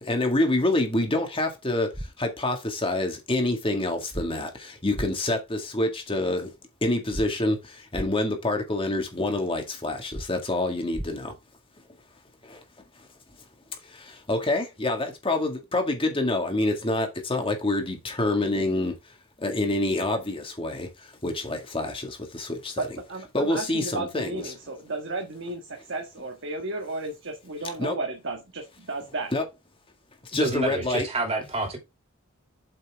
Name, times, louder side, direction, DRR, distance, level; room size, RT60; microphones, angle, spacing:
voice 1, 0.1-1.9 2.2-4.5 4.8-6.5 6.8-7.6 7.9-11.2 14.3-18.9 19.4-20.9 21.2-21.9 22.4-22.6 23.3-24.5 27.8-27.9 29.3-29.4 30.3-31.0, left 2 dB, 25° left, 1.9 m, -26 dB
sound 1, 1.9-2.1 4.1-4.3 4.9-5.1 7.1-7.3 7.9-8.1 10.1-10.3 10.9-11.1, equal, 10° right, 0.7 m, -33 dB
voice 2, 22.8-29.3, right 2 dB, 55° right, 1.6 m, -33 dB
voice 3, 30.3-31.8, right 2 dB, 30° right, 2.7 m, -28 dB
7.7 x 5.7 x 3.6 m
head